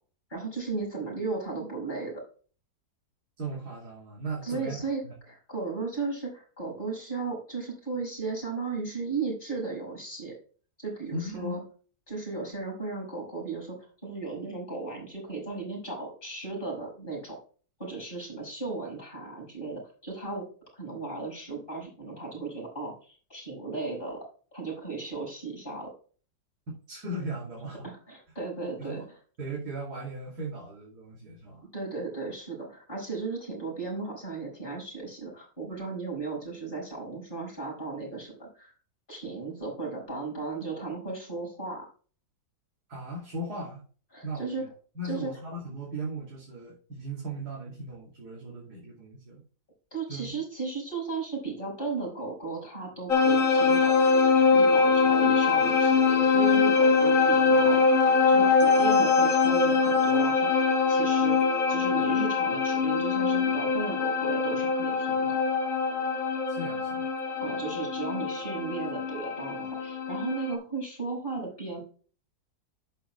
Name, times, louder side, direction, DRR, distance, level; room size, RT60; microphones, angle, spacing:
voice 1, 0.3-2.2 4.4-5.0 5.3-10.3 10.8-11.6 12.1-17.4 17.8-20.5 20.7-24.2 24.5-25.9 27.8-29.0 31.7-38.7 39.1-41.9 44.1-44.6 45.0-45.3 49.9-54.0 54.5-57.8 58.3-65.4 67.4-71.8, right 4 dB, 30° left, -3 dB, 5.8 m, -35 dB
voice 2, 3.4-5.1 11.1-11.7 26.9-27.9 28.8-29.1 29.4-31.7 42.9-43.8 44.2-44.7 44.9-49.4 50.1-50.3 66.5-67.1, right 2 dB, 75° right, -3 dB, 3.2 m, -37 dB
sound 1, 53.1-70.5, left 4 dB, 55° left, 2.1 m, -23 dB
11.5 x 9.1 x 2.3 m, 0.40 s
omnidirectional pair, 1.7 m